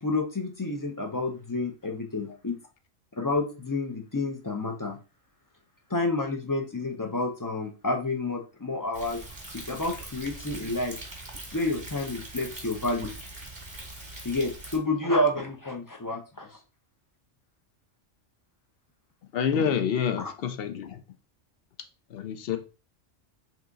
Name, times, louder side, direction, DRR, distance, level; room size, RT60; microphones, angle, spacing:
voice 1, 0.0-2.6 3.2-5.0 5.9-9.2 9.5-11.0 11.5-13.1 14.2-16.6, left 2 dB, 30° left, 0.3 m, -29 dB
Thunder, 8.9-14.8, right 1 dB, 25° right, 1.2 m, -42 dB
voice 2, 19.3-21.0 22.1-22.6, left 7 dB, 60° left, 0.7 m, -27 dB
3.5 x 3.0 x 3.7 m
omnidirectional pair, 1.3 m